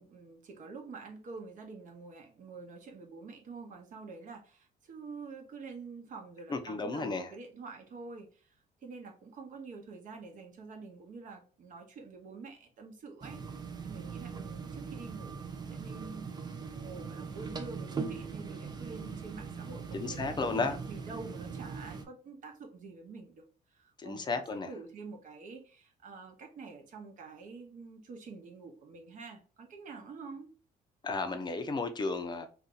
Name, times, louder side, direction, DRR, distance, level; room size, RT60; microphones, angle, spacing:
voice 1, 0.0-16.3 16.7-30.5, right 4 dB, 50° right, 0.9 m, -47 dB
voice 2, 6.5-7.3 19.9-20.8 24.0-24.7 31.0-32.5, left 3 dB, 25° left, 0.6 m, -33 dB
sound 1, 13.2-22.0, right 5 dB, 25° right, 0.4 m, -41 dB
2.7 x 2.4 x 3.8 m
cardioid pair, 110°, 17 cm